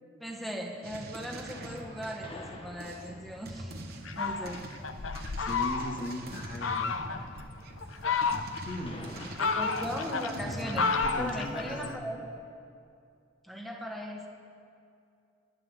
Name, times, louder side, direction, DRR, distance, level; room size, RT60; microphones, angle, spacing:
voice 1, 0.2-3.7 4.1-4.6 9.4-12.3 13.5-14.3, equal, ahead, 0 dB, 1.7 m, -38 dB
sound 1, 0.8-11.3, right 1 dB, 55° right, 1.4 m, -44 dB
sound 2, 1.5-9.4, left 1 dB, 30° left, 1.2 m, -51 dB
Fowl, 4.1-6.1 6.6-7.2 7.8-8.7 9.2-12.0, left 4 dB, 85° left, 0.8 m, -31 dB
voice 2, 5.4-7.0 8.6-9.3 10.4-12.0, left 1 dB, 45° left, -1 dB, 2.2 m, -38 dB
29.5 x 11.5 x 3.8 m, 2.5 s
head